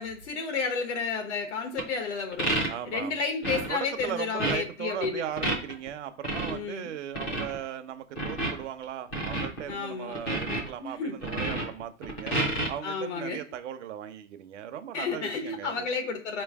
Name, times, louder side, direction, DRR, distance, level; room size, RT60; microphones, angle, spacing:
voice 1, 0.0-2.5 2.9-5.2 6.5-6.9 9.7-10.2 10.8-11.2 12.8-13.4 14.9-16.4, left 5 dB, 70° left, 5 dB, 1.0 m, -31 dB
sound 1, 1.8-1.9 2.3-3.0 3.4-3.7 4.0-4.1 4.4-4.5 5.0-5.9 6.2-6.6 7.1-7.6 8.2-8.8 9.1-9.7 10.1-10.7 11.2-12.7, right 2 dB, 10° left, 0.4 m, -29 dB
voice 2, 2.7-3.2 3.7-12.4 12.7-15.9, right 10 dB, 70° right, 9 dB, 0.8 m, -38 dB
4.6 x 3.1 x 3.5 m, 0.41 s
supercardioid pair, 165°, 37 cm